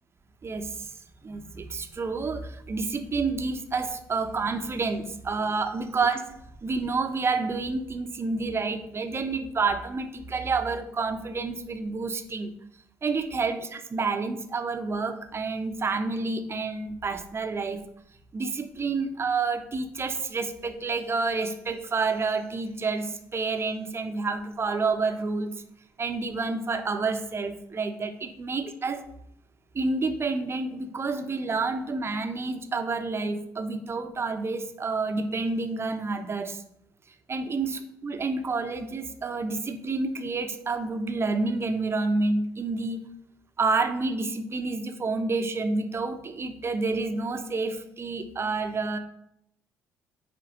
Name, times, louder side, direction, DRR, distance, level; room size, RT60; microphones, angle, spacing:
voice 1, 0.4-0.9 1.2-6.2 6.6-12.5 13.0-17.8 18.3-25.5 26.0-29.1 29.7-36.6 37.3-43.0 43.6-49.0, right 3 dB, 30° right, 7 dB, 0.9 m, -29 dB
9.0 x 3.4 x 6.0 m, 0.76 s
figure-of-eight pair, 50°, 8 cm